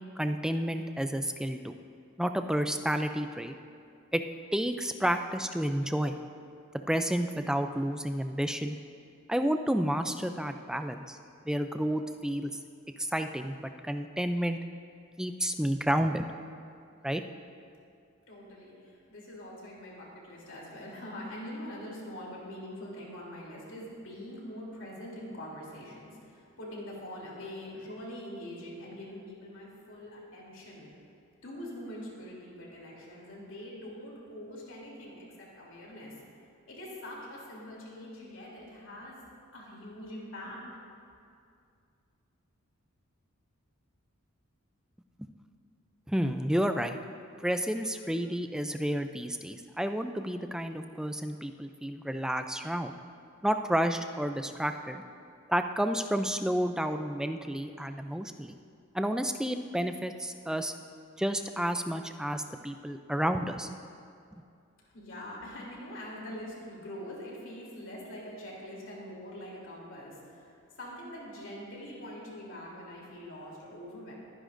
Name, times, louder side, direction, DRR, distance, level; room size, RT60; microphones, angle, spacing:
voice 1, 0.2-1.8 2.2-3.6 4.1-4.2 4.5-6.2 6.9-8.8 9.3-11.2 11.5-12.5 13.0-14.6 15.2-16.3 17.0-17.2 46.1-47.0 47.4-52.9 53.4-55.0 55.5-58.5 58.9-60.7 61.2-63.8, equal, 5° right, 7 dB, 0.3 m, -30 dB
voice 2, 18.3-30.9 31.4-36.2 36.7-39.2 39.5-40.6 64.8-74.1, left 1 dB, 60° left, -4 dB, 3.2 m, -44 dB
22.5 x 10.0 x 2.6 m, 2.4 s
head